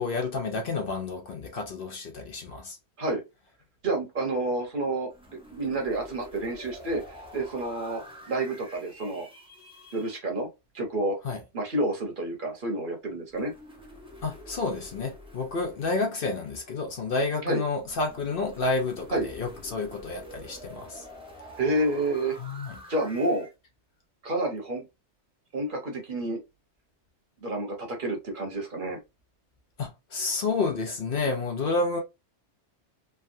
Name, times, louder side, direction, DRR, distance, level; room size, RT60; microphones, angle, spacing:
voice 1, 0.0-2.8 11.2-11.4 14.2-21.0 22.4-22.7 29.8-32.0, left 3 dB, 55° left, 0.8 m, -30 dB
voice 2, 3.8-5.1 5.5-8.0 8.3-9.3 9.9-10.5 10.7-11.2 11.5-13.5 17.4-17.6 19.1-19.3 21.6-22.4 22.9-23.5 24.2-24.8 25.5-26.4 27.4-29.0, right 2 dB, 50° right, 1.0 m, -29 dB
sound 1, 5.1-10.2 13.3-17.1 17.8-23.5, equal, 5° right, 0.8 m, -47 dB
3.4 x 2.2 x 2.6 m
omnidirectional pair, 1.2 m